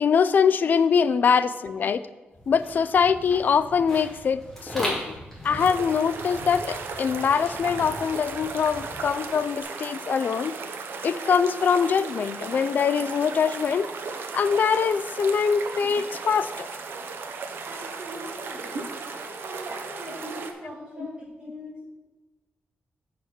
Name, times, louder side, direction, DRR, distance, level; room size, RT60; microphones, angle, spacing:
voice 1, 0.0-2.0 2.5-5.0 5.4-10.6 11.0-13.9 14.3-16.7, left 6 dB, 50° left, 14 dB, 0.3 m, -23 dB
sound 1, 2.3-9.6, equal, 5° left, 2.6 m, -38 dB
sound 2, 5.6-20.5, right 4 dB, 75° right, 0.8 m, -36 dB
voice 2, 17.7-18.8 19.2-21.9, equal, 25° right, -7 dB, 2.9 m, -41 dB
8.0 x 4.8 x 5.9 m, 1.2 s
wide cardioid pair, 155°, 4 cm